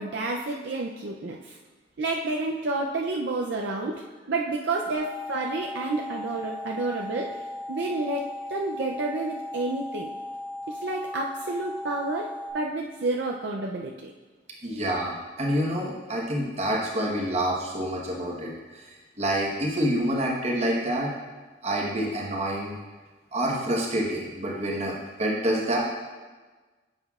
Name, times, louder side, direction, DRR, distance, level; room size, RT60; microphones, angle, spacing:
voice 1, 0.0-1.6 2.0-4.0 4.3-7.3 7.7-10.1 10.7-12.3 12.5-14.1, right 2 dB, 65° right, 0 dB, 0.5 m, -30 dB
sound 1, 4.9-12.5, left 1 dB, 55° left, 2.5 m, -37 dB
voice 2, 14.6-18.9 19.2-21.1 21.6-22.7 23.3-25.8, right 1 dB, 35° right, -2 dB, 1.1 m, -27 dB
9.5 x 6.8 x 2.4 m, 1.3 s
head